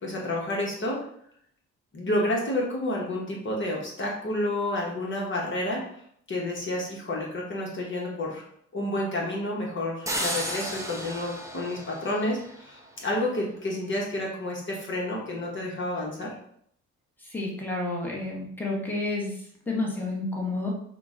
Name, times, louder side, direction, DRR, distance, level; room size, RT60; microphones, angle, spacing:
voice 1, 0.0-1.0 1.9-5.9 6.3-8.4 8.7-16.3, left 1 dB, 40° left, -2 dB, 1.1 m, -30 dB
sound 1, 10.1-12.9, right 1 dB, 10° right, 0.7 m, -34 dB
voice 2, 17.2-20.7, left 2 dB, 5° left, -3 dB, 1.2 m, -30 dB
5.7 x 2.2 x 3.7 m, 0.68 s
cardioid pair, 90°, 30 cm